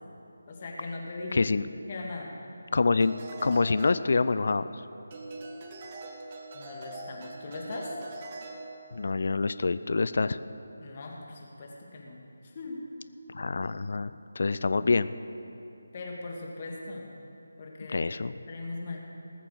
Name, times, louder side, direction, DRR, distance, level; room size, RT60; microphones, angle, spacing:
voice 1, 0.5-1.4 1.9-2.3 6.5-8.0 10.8-12.2 12.5-12.8 15.9-17.1 17.6-18.0 18.5-19.0, left 3 dB, 35° left, -1 dB, 2.0 m, -39 dB
voice 2, 1.3-1.7 2.7-3.2 3.4-4.7 8.9-10.4 13.3-14.1 14.4-15.1 17.9-18.3, left 4 dB, 55° left, 14 dB, 0.4 m, -26 dB
sound 1, 3.0-4.7 5.1-9.1, right 2 dB, 30° right, 1.2 m, -43 dB
19.5 x 6.8 x 6.5 m, 2.9 s
figure-of-eight pair, 155°, 0 cm